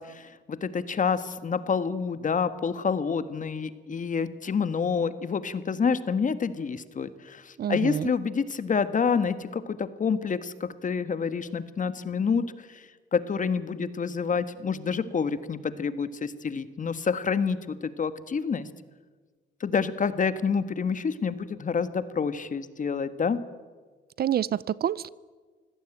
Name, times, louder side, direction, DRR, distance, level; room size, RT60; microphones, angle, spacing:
voice 1, 0.0-18.7 19.6-23.4, left 6 dB, 40° left, 13 dB, 1.5 m, -28 dB
voice 2, 7.6-8.1 24.2-25.1, right 10 dB, 50° right, 21 dB, 0.6 m, -27 dB
25.0 x 16.5 x 9.0 m, 1.4 s
cardioid pair, 90°, 20 cm